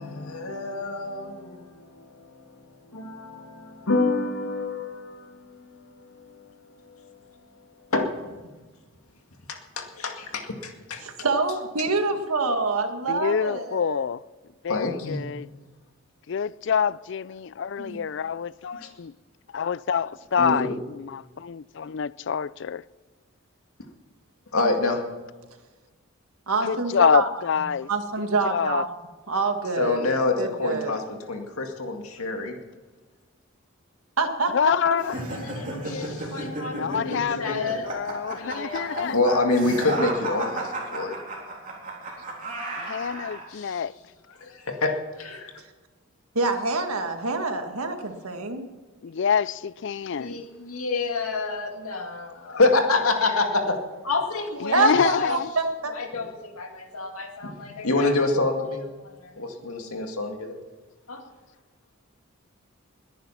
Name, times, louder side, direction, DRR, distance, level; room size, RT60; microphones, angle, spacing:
voice 1, 0.0-7.4 7.6-8.4 9.5-11.0 14.7-15.4 18.8-18.9 20.4-20.8 24.5-25.0 29.8-32.6 35.3-37.9 38.3-41.2 43.5-43.8 44.4-44.9 45.2-45.5 50.2-53.4 54.1-55.3 55.9-60.6 61.1-61.2, left 3 dB, 90° left, 2.2 m, -28 dB
voice 2, 11.0-14.0 17.8-18.0 26.5-27.3 27.9-28.9 29.3-30.0 30.4-30.9 34.2-34.5 46.4-48.6 54.7-55.9, right 3 dB, 90° right, 1.8 m, -26 dB
voice 3, 13.1-14.2 14.6-15.5 16.3-19.1 19.5-22.8 26.6-27.9 28.4-28.8 34.5-35.2 36.7-39.2 42.8-43.9 49.0-50.4 54.6-55.5, left 7 dB, 55° left, 0.4 m, -26 dB
sound 1, 35.0-43.4, right 2 dB, 35° right, 3.6 m, -33 dB
21.0 x 10.0 x 5.8 m
head